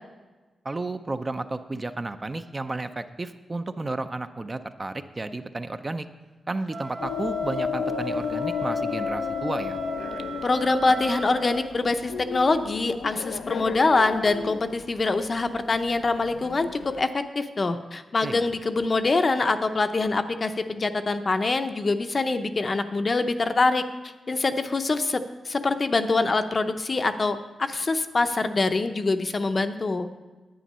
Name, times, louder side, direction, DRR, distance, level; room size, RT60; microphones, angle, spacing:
voice 1, 0.6-6.1 6.5-9.8 18.2-18.5, right 2 dB, 25° right, 9 dB, 0.4 m, -32 dB
Wind instrument woodwind instrument, 6.7-11.7, right 4 dB, 55° right, 1.8 m, -38 dB
sound 1, 7.0-17.1, left 6 dB, 90° left, 0.5 m, -32 dB
voice 2, 10.4-30.1, left 3 dB, 35° left, 9 dB, 0.6 m, -24 dB
10.0 x 9.1 x 5.4 m, 1.3 s
wide cardioid pair, 135°, 0 cm